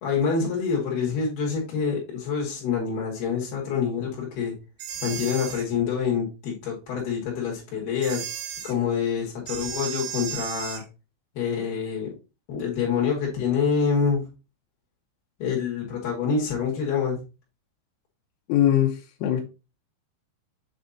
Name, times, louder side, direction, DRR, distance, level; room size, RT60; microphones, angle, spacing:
voice 1, 0.0-4.6 5.0-8.2 8.6-10.8 11.4-12.1 12.5-14.2 15.4-17.2, left 6 dB, 60° left, 3.8 m, -26 dB
sound 1, 4.8-5.7 8.0-8.7 9.5-10.8, right 9 dB, 85° right, 3.6 m, -34 dB
voice 2, 18.5-19.4, left 11 dB, 85° left, 3.3 m, -21 dB
8.1 x 3.5 x 4.0 m
omnidirectional pair, 5.6 m